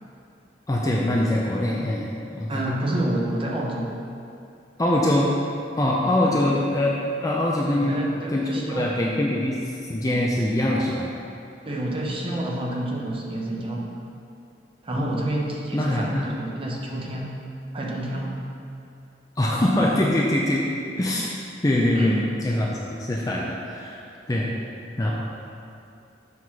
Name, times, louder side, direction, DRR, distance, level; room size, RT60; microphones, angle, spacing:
voice 1, 0.7-2.6 4.8-5.3 5.8-8.0 8.3-11.1 14.9-15.2 15.7-16.3 19.4-20.7 21.0-21.4 21.6-24.0 24.3-24.5 25.0-25.1, left 1 dB, 20° left, -3 dB, 0.5 m, -23 dB
voice 2, 2.5-4.0 6.2-6.5 7.7-8.9 11.6-13.9 14.8-17.4 17.7-18.4 21.9-22.2, right 1 dB, 30° right, -2 dB, 0.9 m, -29 dB
7.4 x 4.0 x 5.8 m, 2.5 s
head